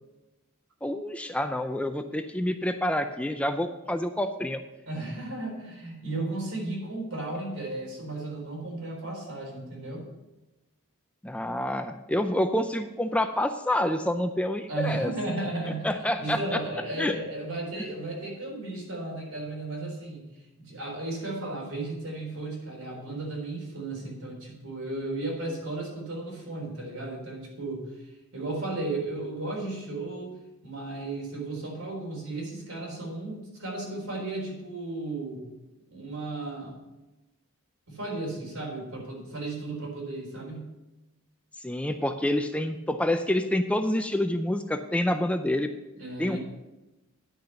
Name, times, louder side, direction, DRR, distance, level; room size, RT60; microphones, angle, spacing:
voice 1, 0.8-4.6 11.2-15.1 15.7-16.6 17.0-17.2 41.6-45.7 46.2-46.4, left 1 dB, 5° left, 7 dB, 0.4 m, -27 dB
voice 2, 4.9-10.1 14.7-15.9 16.2-20.3 20.6-27.9 28.3-30.4 30.6-35.5 35.9-36.8 37.9-40.7 45.9-46.4, right 2 dB, 85° right, -2 dB, 4.0 m, -34 dB
10.0 x 6.6 x 5.7 m, 1.0 s
head